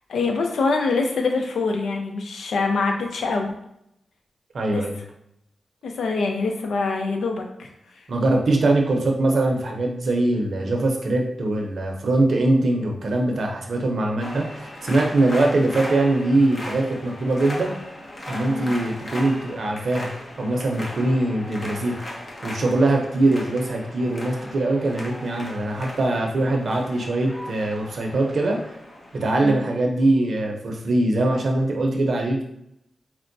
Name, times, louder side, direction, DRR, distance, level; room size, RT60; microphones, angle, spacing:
voice 1, 0.1-3.6 4.7-4.8 5.8-7.7 18.5-18.7 29.4-29.6, left 3 dB, 90° left, 3 dB, 0.5 m, -24 dB
voice 2, 4.5-5.0 8.1-17.7 18.3-20.1 20.4-21.9 22.4-28.6 29.1-32.4, right 2 dB, 65° right, 1 dB, 0.6 m, -22 dB
sound 1, 14.2-29.7, left 1 dB, 40° left, 0.7 m, -37 dB
4.4 x 2.1 x 2.6 m, 0.78 s
cardioid pair, 80°, 0 cm